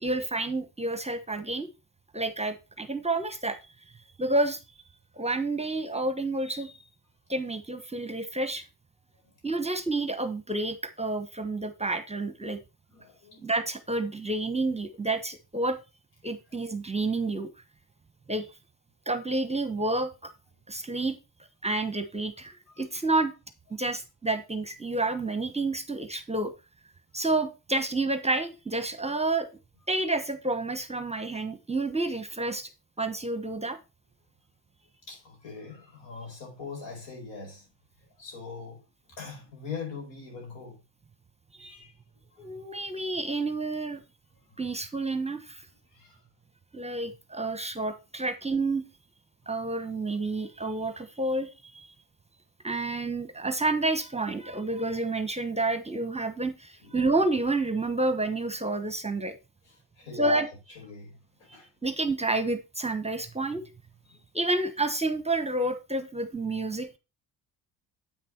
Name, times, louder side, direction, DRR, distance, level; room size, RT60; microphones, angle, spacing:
voice 1, 0.0-1.7 2.1-3.6 4.2-4.6 5.2-6.8 7.3-8.6 9.4-12.6 13.4-15.8 16.2-17.5 18.3-18.5 19.1-20.3 20.7-21.2 21.6-23.3 23.7-26.5 27.1-29.5 29.9-32.7 33.0-33.8 41.5-41.7 42.4-44.0 44.6-45.7 46.7-48.8 49.5-51.9 52.6-59.4 60.2-60.5 61.8-63.6 64.3-67.0, right 2 dB, 15° right, 1.0 m, -29 dB
voice 2, 12.9-13.5 22.7-22.8 35.1-37.7 38.2-38.8 39.1-40.8 41.6-42.0 44.5-44.6 45.9-46.2 56.8-57.0 59.6-61.7 64.1-64.2, left 4 dB, 80° left, 4.8 m, -42 dB
8.7 x 6.0 x 4.3 m
supercardioid pair, 75°, 43 cm